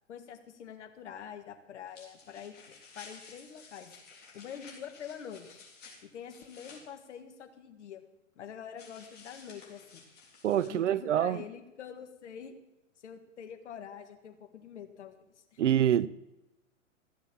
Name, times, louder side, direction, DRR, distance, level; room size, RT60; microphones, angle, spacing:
voice 1, 0.1-3.9 4.3-5.6 6.0-8.0 8.4-10.1 10.6-12.5 13.0-15.6, left 8 dB, 60° left, 1.7 m, -46 dB
sound 1, 1.9-6.8 8.8-10.7, left 4 dB, 25° left, 3.6 m, -53 dB
voice 2, 10.4-11.4 15.6-16.1, right 10 dB, 65° right, 0.6 m, -26 dB
14.5 x 7.2 x 7.4 m
figure-of-eight pair, 110°, 39 cm